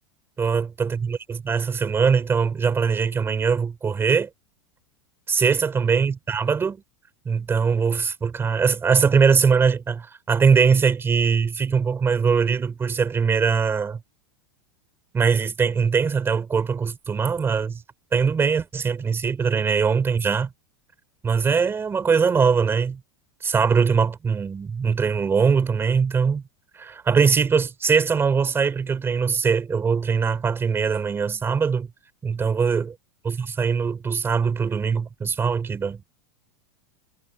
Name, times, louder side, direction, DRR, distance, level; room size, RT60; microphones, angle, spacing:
voice 1, 0.4-4.3 5.3-6.8 7.2-14.0 15.1-17.8 18.1-20.5 21.2-23.0 23.4-26.4 26.7-31.9 32.2-32.9 33.2-36.0, right 5 dB, 15° right, 4.3 m, -21 dB
supercardioid pair, 145°, 14 cm